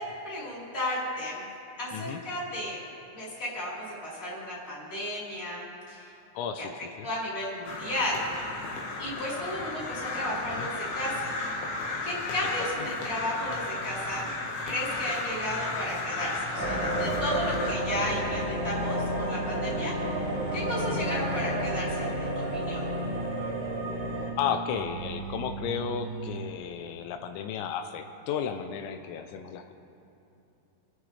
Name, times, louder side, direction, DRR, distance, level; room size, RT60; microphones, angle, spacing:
voice 1, 0.0-1.5 1.8-2.8 3.1-6.1 6.6-6.7 7.0-8.3 9.0-11.3 12.0-14.3 14.6-19.9 20.5-22.9, left 1 dB, 15° left, -7 dB, 3.2 m, -33 dB
voice 2, 6.4-7.1 10.5-10.7 20.8-21.0 24.4-29.7, left 8 dB, 85° left, 7 dB, 3.3 m, -33 dB
Crow, 7.7-17.7, left 3 dB, 65° left, 2.6 m, -34 dB
sound 1, 16.5-24.3, equal, 30° left, 3.6 m, -31 dB
sound 2, 19.6-26.5, right 6 dB, 80° right, 2.9 m, -39 dB
28.5 x 10.0 x 3.3 m, 2.8 s
omnidirectional pair, 5.9 m